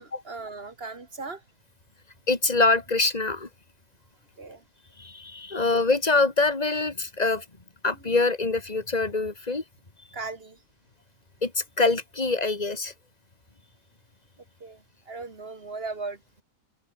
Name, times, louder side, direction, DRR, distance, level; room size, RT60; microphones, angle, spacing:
voice 1, 0.0-1.4 4.4-4.6 10.1-10.6 14.6-16.4, right 3 dB, 30° right, 2.7 m, -38 dB
voice 2, 2.3-3.5 5.0-7.4 7.8-9.6 11.4-12.9, left 3 dB, 20° left, 2.7 m, -24 dB
open air
omnidirectional pair, 1.9 m